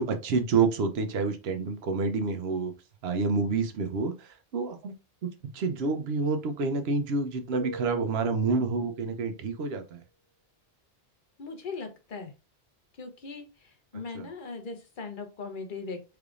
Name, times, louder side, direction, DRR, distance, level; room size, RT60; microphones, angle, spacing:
voice 1, 0.0-2.7 3.0-4.9 5.2-10.0 14.1-14.3, right 4 dB, 85° right, 7 dB, 0.9 m, -28 dB
Keyboard (musical), 7.5-9.5, right 3 dB, 30° right, 1.8 m, -43 dB
voice 2, 11.4-12.3 13.0-16.2, left 4 dB, 55° left, 5 dB, 0.9 m, -39 dB
3.4 x 3.4 x 2.4 m, 0.29 s
omnidirectional pair, 1.0 m